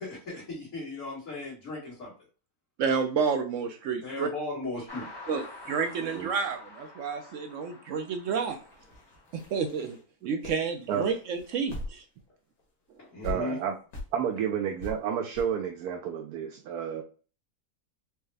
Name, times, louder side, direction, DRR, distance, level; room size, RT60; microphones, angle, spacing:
voice 1, 0.0-2.1 4.0-5.1 13.0-13.6, left 2 dB, 55° left, -8 dB, 2.0 m, -37 dB
voice 2, 2.8-4.3 5.3-8.6 9.3-10.0 10.2-12.0, right 5 dB, 70° right, 6 dB, 0.8 m, -30 dB
sound 1, 4.9-9.7, left 2 dB, 25° left, 0.5 m, -47 dB
voice 3, 6.0-6.3 10.9-11.1 13.2-13.7 14.1-17.0, right 8 dB, 85° right, 3 dB, 1.1 m, -31 dB
sound 2, 8.5-12.3 12.6-12.7 13.2-13.4 13.9-14.1 14.8-14.9 15.3-15.4, left 2 dB, 75° left, 1.8 m, -41 dB
4.7 x 2.1 x 3.3 m, 0.38 s
omnidirectional pair, 1.6 m